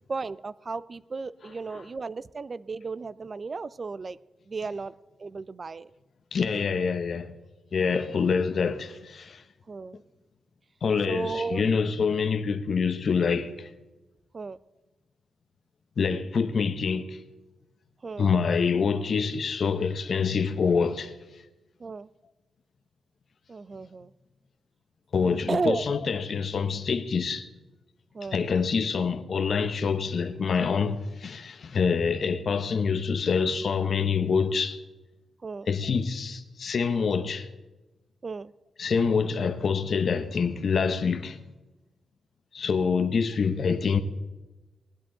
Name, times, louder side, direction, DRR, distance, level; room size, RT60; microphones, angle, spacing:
voice 1, 0.1-4.2 4.5-4.9 5.2-5.9 9.7-10.0 11.1-11.7 14.3-14.6 18.0-18.3 21.8-22.1 23.5-24.1 25.5-25.9 28.1-28.4 35.4-35.7 38.2-38.5, right 4 dB, 35° right, 0.4 m, -34 dB
voice 2, 6.3-7.3 7.7-9.4 10.8-13.7 16.0-17.2 18.2-21.1 25.1-27.5 28.3-34.8 35.7-37.5 38.8-41.4 42.5-44.0, left 5 dB, 55° left, 0.8 m, -26 dB
19.0 x 10.5 x 3.8 m
wide cardioid pair, 125°, 0 cm